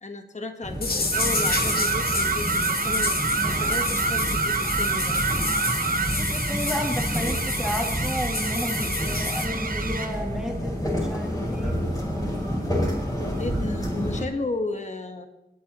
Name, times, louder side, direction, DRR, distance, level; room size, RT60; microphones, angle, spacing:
voice 1, 0.0-3.2 3.5-5.2 13.4-15.3, left 3 dB, 45° left, 6 dB, 1.3 m, -34 dB
sound 1, 0.6-14.2, equal, 20° left, 4.9 m, -29 dB
sound 2, 0.8-9.5, left 3 dB, 65° left, 1.7 m, -30 dB
sound 3, 1.1-10.2, right 4 dB, 55° right, 0.9 m, -28 dB
voice 2, 6.0-11.8, equal, 5° right, 1 dB, 2.1 m, -32 dB
29.5 x 10.5 x 3.0 m, 0.95 s
wide cardioid pair, 90°, 17 cm